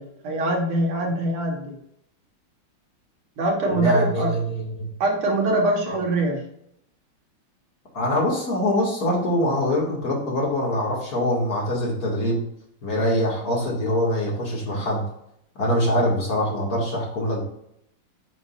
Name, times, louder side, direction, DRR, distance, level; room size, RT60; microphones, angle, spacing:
voice 1, 0.0-1.7 3.4-4.3 5.0-6.4, right 1 dB, 80° right, 0 dB, 2.4 m, -23 dB
voice 2, 3.7-4.9 5.9-6.0 7.9-12.4 12.8-15.0 15.6-17.4, left 1 dB, 45° left, -3 dB, 2.4 m, -24 dB
8.6 x 5.2 x 2.5 m, 0.75 s
omnidirectional pair, 2.3 m